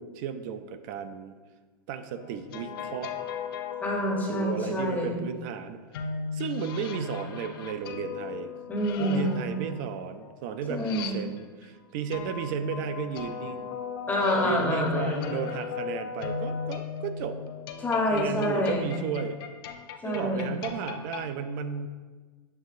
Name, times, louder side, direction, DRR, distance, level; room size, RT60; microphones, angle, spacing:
voice 1, 0.0-1.4 1.9-3.1 4.3-5.8 6.3-8.5 9.0-13.8 14.4-17.4 18.1-19.4 20.0-21.9, right 7 dB, 50° right, 10 dB, 0.4 m, -34 dB
sound 1, 2.2-4.7 5.9-11.6 12.1-21.3, left 6 dB, 70° left, 0.5 m, -37 dB
voice 2, 3.8-5.2 8.7-9.5 10.7-11.2 14.1-15.3 17.8-18.9 20.0-20.5, left 1 dB, 15° left, -1 dB, 0.7 m, -27 dB
7.3 x 2.6 x 2.5 m, 1.4 s
supercardioid pair, 135°, 13 cm